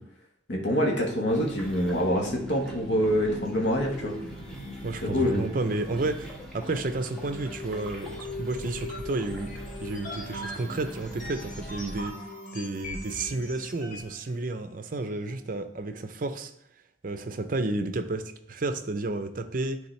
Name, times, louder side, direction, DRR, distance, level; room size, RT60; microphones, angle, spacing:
voice 1, 0.5-4.1 5.0-5.4, equal, 80° left, 0 dB, 1.1 m, -26 dB
sound 1, 1.3-12.1, equal, 5° left, 1.3 m, -41 dB
voice 2, 4.8-9.5 9.8-12.2 12.5-16.5 17.0-19.8, right 2 dB, 50° right, 8 dB, 0.5 m, -31 dB
sound 2, 7.0-14.2, left 1 dB, 45° left, 1.2 m, -40 dB
9.9 x 3.8 x 3.2 m, 0.69 s
head